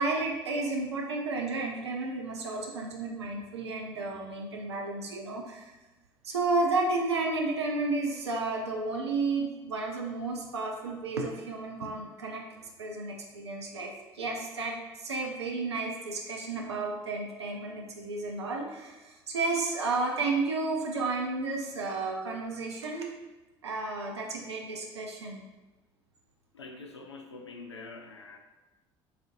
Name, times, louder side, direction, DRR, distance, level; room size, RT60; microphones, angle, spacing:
voice 1, 0.0-5.7 6.2-12.4 12.8-23.1 23.6-25.4, right 3 dB, 80° right, 0 dB, 0.5 m, -32 dB
voice 2, 26.5-28.4, left 3 dB, 85° left, 5 dB, 0.4 m, -45 dB
6.5 x 2.5 x 2.5 m, 1.1 s
figure-of-eight pair, 55°, 14 cm